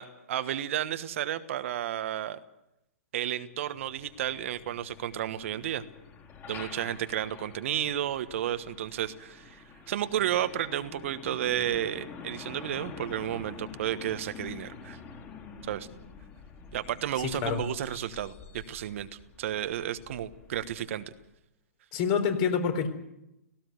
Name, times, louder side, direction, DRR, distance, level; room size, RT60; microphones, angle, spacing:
voice 1, 0.0-2.4 3.1-5.8 6.5-15.0 15.6-15.9 16.7-19.1 19.4-21.0, right 11 dB, 55° right, 11 dB, 1.3 m, -32 dB
Truck, 3.6-21.3, left 5 dB, 25° left, 4.2 m, -47 dB
voice 2, 21.9-22.9, left 7 dB, 40° left, 7 dB, 3.9 m, -26 dB
17.5 x 16.5 x 9.5 m, 0.86 s
hypercardioid pair, 120°, 8 cm